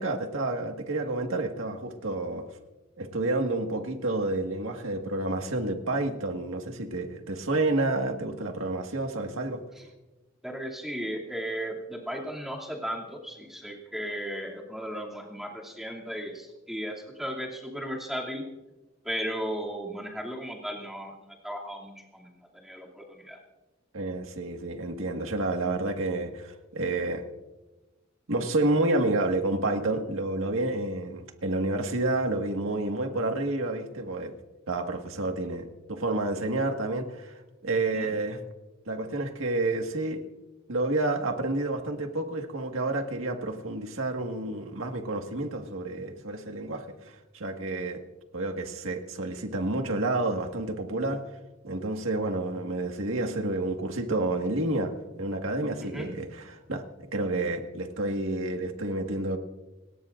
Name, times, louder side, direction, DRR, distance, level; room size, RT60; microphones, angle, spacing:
voice 1, 0.0-2.4 3.0-9.6 23.9-27.2 28.3-34.3 34.7-38.4 38.9-40.2 40.7-48.0 48.3-51.2 51.6-54.9 55.2-56.8 57.1-59.4, right 2 dB, 85° right, 4 dB, 1.8 m, -29 dB
voice 2, 10.4-18.4 19.0-23.4 37.9-38.1 55.8-56.1, equal, ahead, -2 dB, 2.7 m, -36 dB
30.0 x 18.0 x 2.6 m, 1.1 s
head